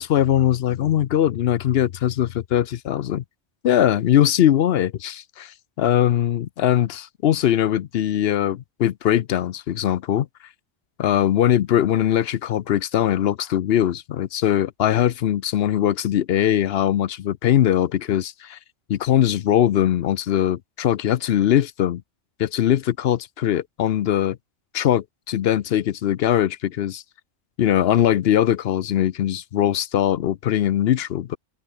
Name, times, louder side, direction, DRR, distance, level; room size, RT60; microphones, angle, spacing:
voice 1, 0.0-3.2 3.6-10.3 11.0-18.6 18.9-22.0 22.4-24.4 24.7-27.0 27.6-31.4, left 11 dB, 65° left, 0.8 m, -21 dB
open air
omnidirectional pair, 1.2 m